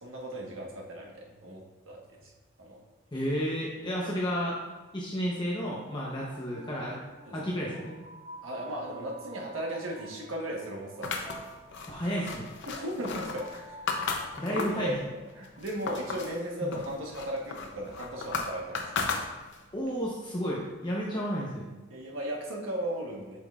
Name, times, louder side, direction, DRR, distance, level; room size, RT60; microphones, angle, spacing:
voice 1, 0.0-2.3 2.6-2.8 7.2-7.8 8.4-11.4 12.7-14.1 14.5-19.2 21.9-23.4, right 1 dB, 80° right, -1 dB, 1.3 m, -37 dB
voice 2, 3.1-4.6 4.9-7.0 7.3-8.0 11.9-12.5 14.4-14.9 16.6-16.7 19.7-21.7, equal, 25° left, -4 dB, 0.8 m, -32 dB
sound 1, 6.3-17.2, right 2 dB, 35° right, 0.9 m, -51 dB
sound 2, 11.0-14.9 15.3-16.4 16.7-19.7, left 4 dB, 65° left, 0.7 m, -35 dB
7.5 x 5.4 x 2.4 m, 1.2 s
head